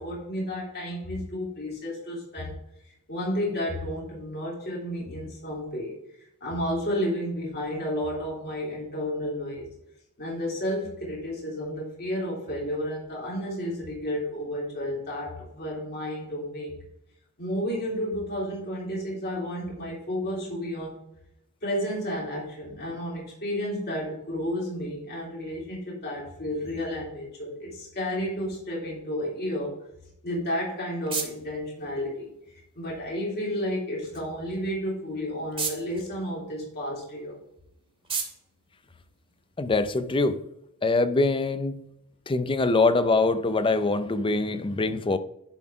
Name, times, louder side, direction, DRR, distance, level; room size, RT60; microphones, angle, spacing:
voice 1, 0.0-2.6 2.8-5.9 6.4-9.7 10.2-16.7 17.4-21.0 21.6-29.7 30.2-37.4, equal, 45° left, -5 dB, 3.6 m, -32 dB
sound 1, 30.3-39.7, right 5 dB, 25° right, 1.9 m, -40 dB
voice 2, 39.6-40.4 40.8-41.8 42.3-45.2, left 3 dB, 25° left, 12 dB, 0.5 m, -23 dB
11.0 x 4.1 x 4.7 m, 0.83 s
head